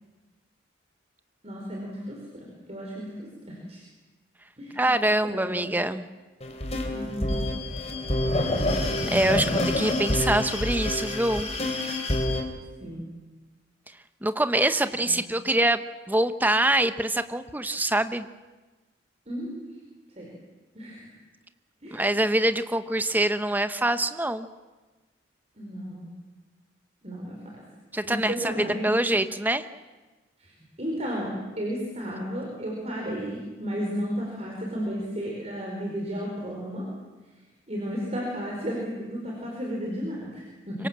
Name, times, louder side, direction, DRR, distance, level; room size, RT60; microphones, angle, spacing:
voice 1, 1.4-3.8 4.6-5.0 5.2-6.0 6.9-7.4 12.8-13.1 14.9-15.0 19.3-19.6 20.1-20.3 20.7-21.1 21.8-22.1 25.6-26.1 27.0-27.6 28.0-29.2 30.4-30.5 30.8-36.9 37.7-40.9, equal, 35° right, -2 dB, 4.7 m, -33 dB
voice 2, 4.8-6.0 9.1-11.5 14.2-15.8 16.1-18.3 21.9-24.5 27.9-29.7, right 1 dB, 10° right, 11 dB, 0.9 m, -24 dB
sound 1, 6.4-12.4, left 1 dB, 35° left, 3.5 m, -27 dB
25.0 x 24.0 x 7.5 m, 1.2 s
head